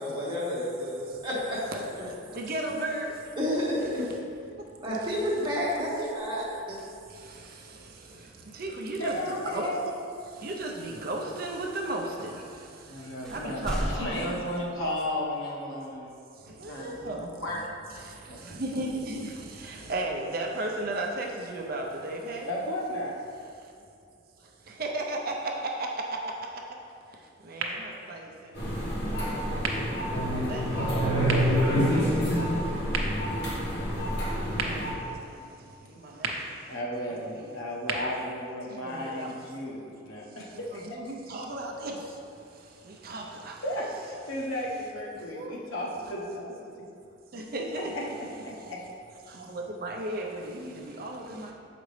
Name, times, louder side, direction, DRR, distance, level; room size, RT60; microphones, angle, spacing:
voice 1, 0.0-1.6 3.4-4.0 4.8-6.8, equal, 25° right, -6 dB, 1.2 m, -30 dB
voice 2, 2.3-3.1 8.5-9.7 10.4-12.4 13.3-14.4 16.6-17.3 18.0-18.1 18.4-22.5 24.8-26.2 27.5-28.2 29.5-29.6 30.4-31.7 34.5-35.1 36.0-36.3 37.4-37.5 38.8-39.4 40.7-41.9 42.9-43.9 45.3-45.6 47.3-47.9 49.3-51.5, right 2 dB, 45° right, 0 dB, 0.6 m, -35 dB
sound 1, 5.7-7.4 9.5-9.7 10.5-11.3 12.2-12.3 12.7-15.5 16.0-16.1 18.7-20.9, equal, 5° left, 0.5 m, -40 dB
voice 3, 9.0-10.0 12.9-16.1 16.7-17.1 17.4-17.6 18.3-19.0 22.5-23.1 31.5-32.5 36.7-41.0 43.6-46.6 47.7-48.0 48.4-48.8, left 1 dB, 85° left, -4 dB, 1.2 m, -34 dB
sound 2, 27.5-39.5, right 3 dB, 85° right, 0.7 m, -39 dB
sound 3, 28.6-34.9, equal, 50° left, 1.3 m, -27 dB
6.8 x 5.0 x 3.2 m, 2.4 s
head